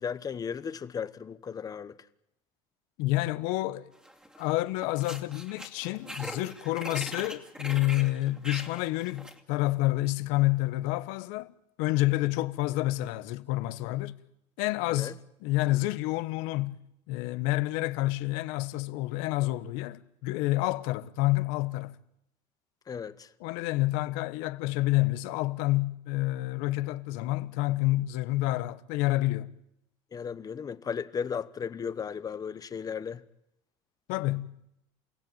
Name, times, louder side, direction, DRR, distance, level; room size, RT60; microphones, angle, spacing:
voice 1, 0.0-2.0 14.9-15.1 22.9-23.3 30.1-33.2, left 6 dB, 30° left, 1.1 m, -35 dB
voice 2, 3.0-3.9 4.4-11.5 11.8-14.2 14.6-15.1 15.4-16.8 17.1-22.0 23.4-29.5 34.1-34.5, left 18 dB, 85° left, 1.2 m, -28 dB
sound 1, 4.0-4.5 4.8-9.4, equal, 5° right, 2.6 m, -41 dB
29.0 x 16.5 x 9.2 m
cardioid pair, 125°, 13 cm